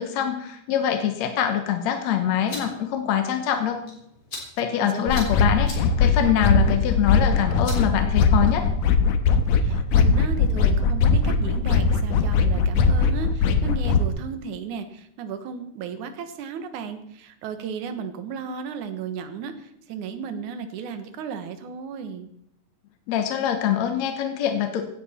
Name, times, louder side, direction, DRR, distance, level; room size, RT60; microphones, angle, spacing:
voice 1, 0.0-3.8 4.6-8.6 23.1-24.8, left 9 dB, 65° left, 6 dB, 2.3 m, -24 dB
sound 1, 2.2-8.8, left 2 dB, 35° left, 4.1 m, -43 dB
voice 2, 4.8-5.3 9.6-22.3, right 6 dB, 75° right, 9 dB, 2.6 m, -34 dB
sound 2, 5.1-14.1, left 4 dB, 85° left, 2.5 m, -20 dB
16.0 x 12.0 x 4.3 m, 0.75 s
omnidirectional pair, 3.6 m